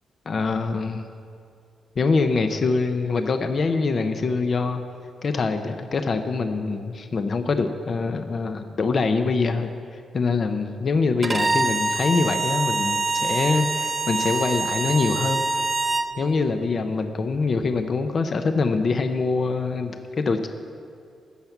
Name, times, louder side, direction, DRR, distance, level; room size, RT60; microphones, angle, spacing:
voice 1, 0.3-1.1 2.0-4.8 5.2-9.7 10.1-15.4 16.2-20.5, left 4 dB, 45° left, 7 dB, 0.7 m, -24 dB
Bowed string instrument, 11.2-16.1, right 3 dB, 25° right, 0.6 m, -25 dB
14.0 x 5.8 x 9.1 m, 2.4 s
cardioid pair, 130°, 0 cm